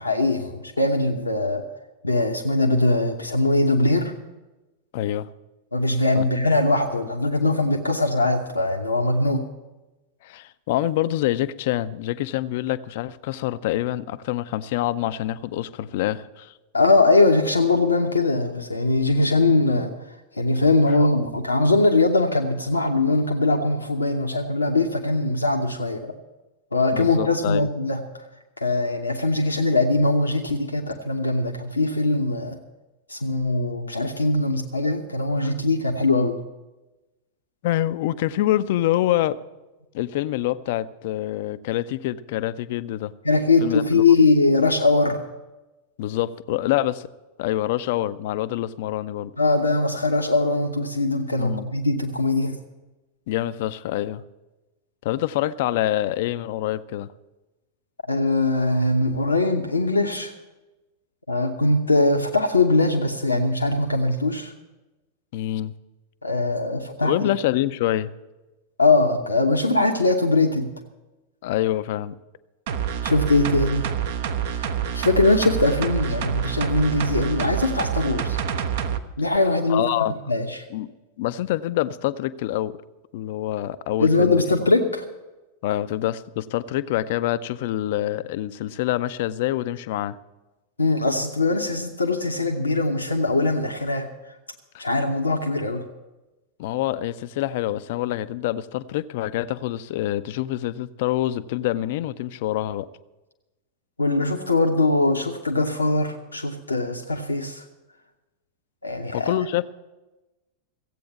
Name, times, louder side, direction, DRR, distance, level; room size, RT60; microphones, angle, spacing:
voice 1, 0.0-1.6 2.0-4.1 5.7-9.4 16.7-19.9 20.4-26.1 26.7-28.0 28.6-32.6 33.1-36.4 43.2-45.2 49.4-52.6 58.1-60.3 61.3-64.5 66.2-67.1 68.8-70.7 73.0-73.9 74.6-78.4 79.2-79.9 80.3-80.6 84.0-85.0 90.8-94.1 94.8-95.8 104.0-107.6 108.8-109.3, left 2 dB, 80° left, 2 dB, 0.8 m, -21 dB
voice 2, 4.9-5.3 6.1-6.2 10.2-16.5 26.9-27.7 35.4-35.5 37.6-39.4 39.9-43.1 43.6-44.0 46.0-47.1 47.4-49.3 51.4-51.7 53.3-54.2 55.0-57.1 65.3-65.7 67.0-68.1 71.4-72.1 79.7-80.1 80.7-80.9 81.2-82.8 83.1-84.4 85.6-90.2 96.6-102.9 109.1-109.6, left 14 dB, 50° left, 15 dB, 0.5 m, -26 dB
sound 1, 72.7-79.0 79.4-79.5, right 8 dB, 55° right, 0.8 m, -27 dB
15.0 x 8.5 x 7.1 m, 1.1 s
figure-of-eight pair, 90°, 0 cm